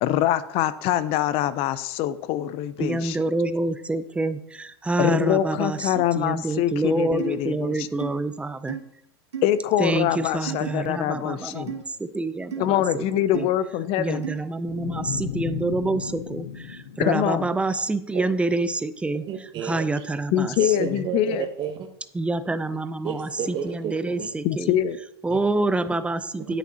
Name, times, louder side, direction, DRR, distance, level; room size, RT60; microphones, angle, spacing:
voice 1, 0.0-3.2 5.0-7.9 9.4-11.8 12.6-14.2 17.0-17.5 20.3-21.5 24.4-25.0, left 12 dB, 40° left, 15 dB, 0.5 m, -24 dB
voice 2, 2.8-5.8 6.2-8.8 9.8-10.1 10.3-13.0 13.3-13.4 14.0-16.0 16.3-16.5 17.0-19.2 19.6-20.5 20.8-20.9 22.2-23.3 23.6-24.7 25.2-26.6, right 2 dB, 10° right, 13 dB, 0.5 m, -27 dB
sound 1, 7.2-7.4 8.0-8.1 8.7-8.8 9.3-9.5 10.5-10.7 11.7-11.8 12.5-12.7 13.3-13.5 14.2-14.4, right 8 dB, 90° right, 1.2 m, -33 dB
sound 2, 14.7-17.9, left 8 dB, 80° left, 0.8 m, -35 dB
voice 3, 19.2-20.0 20.6-21.8 23.0-24.3 25.3-25.4 26.5-26.6, right 8 dB, 35° right, 5 dB, 0.9 m, -32 dB
9.9 x 8.2 x 2.8 m, 0.78 s
hypercardioid pair, 105°, 15 cm